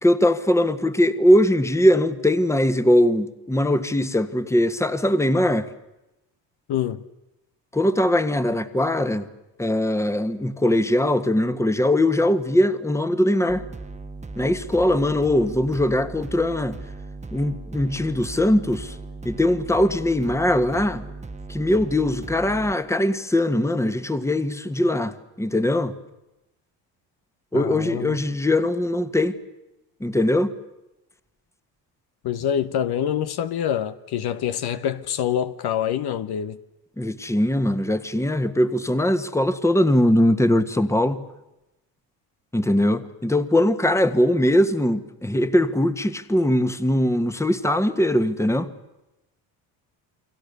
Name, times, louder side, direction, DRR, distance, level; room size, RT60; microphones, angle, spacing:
voice 1, 0.0-5.7 7.7-9.3 9.6-13.6 14.4-16.8 17.3-18.9 19.2-21.0 21.5-25.9 27.5-29.4 30.0-30.5 37.0-41.2 42.5-48.7, left 1 dB, 5° left, 1.6 m, -21 dB
voice 2, 6.7-7.0 27.5-28.2 32.2-36.6, left 9 dB, 60° left, 1.3 m, -26 dB
sound 1, 13.5-22.7, right 3 dB, 15° right, 1.3 m, -38 dB
29.5 x 23.0 x 6.9 m
supercardioid pair, 90°, 44 cm